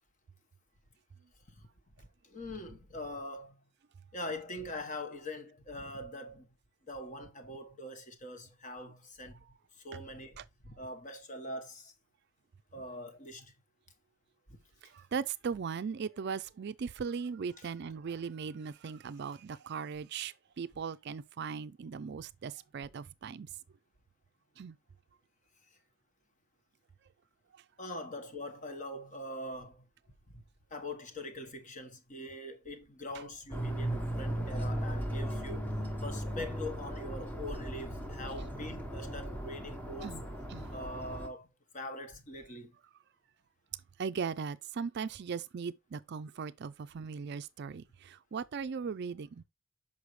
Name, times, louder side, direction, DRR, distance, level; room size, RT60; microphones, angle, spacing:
voice 1, 2.0-3.6 4.1-6.5 6.8-9.4 9.8-10.4 10.6-11.9 12.7-13.5 14.5-14.6 27.8-29.9 30.3-30.4 30.7-35.7 36.0-40.2 40.7-41.5 41.7-42.7, left 1 dB, 35° left, 1.2 m, -43 dB
voice 2, 14.8-23.5 24.6-24.8 40.0-40.2 40.5-40.6 44.0-49.4, right 6 dB, 55° right, 0.4 m, -38 dB
sound 1, 33.5-41.3, equal, 10° left, 1.0 m, -37 dB
6.5 x 5.5 x 3.1 m
head